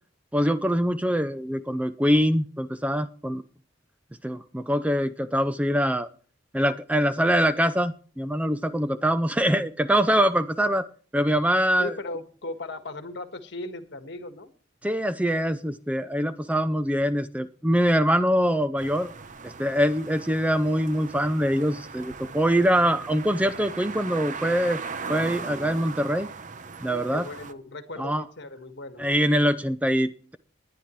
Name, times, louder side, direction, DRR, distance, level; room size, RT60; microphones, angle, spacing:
voice 1, 0.3-3.4 4.2-6.1 6.5-10.9 11.1-11.9 14.8-19.1 19.4-24.8 25.1-26.3 26.8-27.3 28.0-28.2 29.0-30.4, equal, 5° right, 12 dB, 0.4 m, -24 dB
voice 2, 11.8-14.5 26.9-29.1, left 2 dB, 60° left, 8 dB, 1.7 m, -37 dB
sound 1, 18.8-27.5, right 5 dB, 40° right, 0.7 m, -39 dB
20.0 x 10.0 x 3.2 m, 0.43 s
head